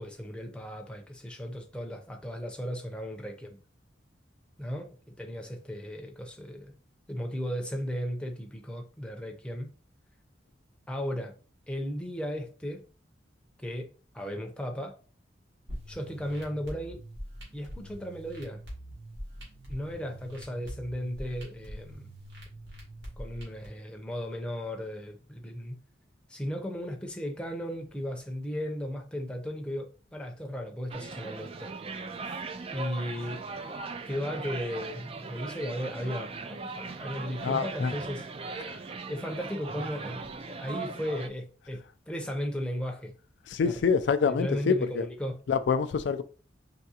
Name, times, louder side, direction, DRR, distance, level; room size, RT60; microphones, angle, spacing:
voice 1, 0.0-3.6 4.6-6.7 7.1-9.7 10.9-11.3 11.7-12.8 13.6-15.0 15.9-17.0 17.5-18.6 19.7-22.1 23.2-25.8 26.3-29.9 30.1-31.7 32.7-33.4 34.1-38.3 39.1-43.1 43.6-44.0 44.2-45.4, equal, 5° left, 0.6 m, -36 dB
sound 1, 15.7-23.7, equal, 70° right, 2.0 m, -44 dB
sound 2, 30.9-41.3, right 4 dB, 30° right, 0.3 m, -39 dB
voice 2, 37.4-37.9 38.6-38.8 43.5-45.0 45.5-46.2, left 5 dB, 70° left, 0.3 m, -26 dB
4.8 x 3.3 x 2.8 m
head